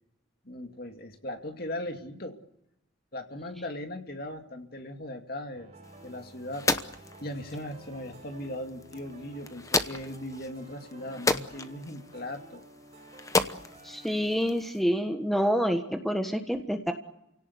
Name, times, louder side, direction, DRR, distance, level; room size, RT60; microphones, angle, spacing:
voice 1, 0.4-2.4 3.1-5.7 6.0-6.7 7.2-12.6, left 1 dB, 50° left, 5 dB, 2.4 m, -38 dB
sound 1, 5.5-14.3, right 2 dB, 35° right, 6.8 m, -52 dB
sound 2, 5.8-14.8, left 3 dB, 15° left, 0.9 m, -34 dB
voice 2, 13.8-16.9, equal, ahead, 5 dB, 1.4 m, -27 dB
30.0 x 17.5 x 8.2 m, 0.88 s
head